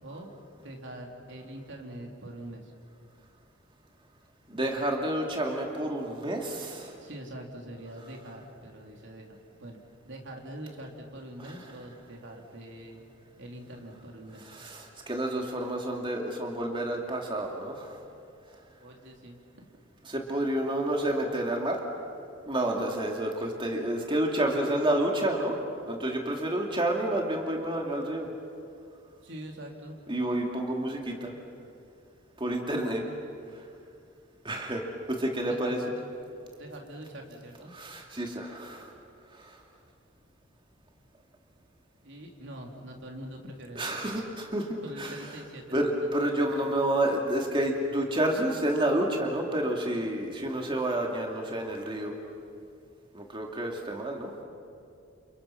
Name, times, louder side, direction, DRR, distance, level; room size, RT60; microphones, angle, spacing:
voice 1, 0.0-0.3 0.6-2.7 7.0-9.8 10.0-13.0 13.4-14.4 18.8-19.7 29.2-30.0 35.5-36.0 36.6-37.7 42.0-43.9 44.8-45.9 46.4-46.7, right 1 dB, 65° right, 1 dB, 3.8 m, -44 dB
voice 2, 4.5-7.0 11.4-11.6 14.4-18.0 20.0-21.8 22.5-25.6 25.9-28.3 30.1-31.3 32.4-33.0 33.5-33.6 34.4-35.8 37.7-38.9 39.3-39.6 43.8-45.4 45.7-52.1 53.1-54.4, right 1 dB, 25° right, 1 dB, 2.6 m, -29 dB
30.0 x 28.5 x 5.9 m, 2.5 s
head